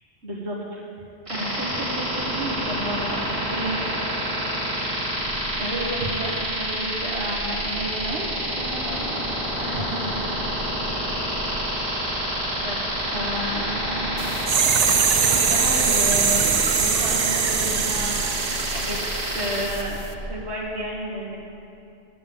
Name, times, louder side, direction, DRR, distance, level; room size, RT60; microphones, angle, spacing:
voice 1, 0.2-0.8 1.2-3.9 5.6-10.3 12.2-12.3 12.6-14.3 14.7-19.0 19.3-21.4, right 1 dB, 70° right, -6 dB, 1.8 m, -32 dB
sound 1, 1.3-19.6, equal, 30° right, 2.4 m, -28 dB
sound 2, 5.2-20.6, equal, ahead, 1.0 m, -39 dB
sound 3, 14.2-19.8 20.1-20.2, right 7 dB, 50° right, 0.5 m, -23 dB
10.5 x 7.8 x 7.6 m, 2.6 s
omnidirectional pair, 1.2 m